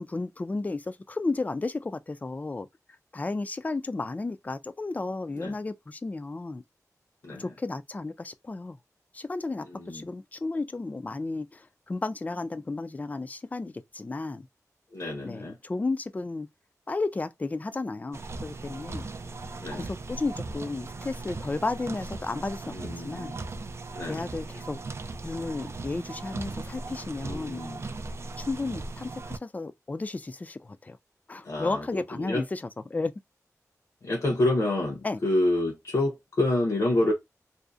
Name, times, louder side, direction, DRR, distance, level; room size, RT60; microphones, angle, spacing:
voice 1, 0.0-2.7 3.1-6.6 7.4-8.8 9.1-14.5 15.2-16.5 16.9-19.1 19.8-22.7 23.0-23.3 24.1-24.8 25.2-27.6 28.4-31.0 31.3-33.1 35.0-35.2, left 3 dB, 25° left, 0.3 m, -33 dB
voice 2, 9.6-10.1 14.9-15.6 19.6-19.9 22.7-23.4 23.9-24.3 27.2-27.8 31.4-32.4 34.0-37.1, left 1 dB, 70° left, 0.8 m, -28 dB
sound 1, 18.1-29.4, right 3 dB, 50° right, 0.3 m, -38 dB
2.6 x 2.0 x 2.3 m
wide cardioid pair, 75°, 6 cm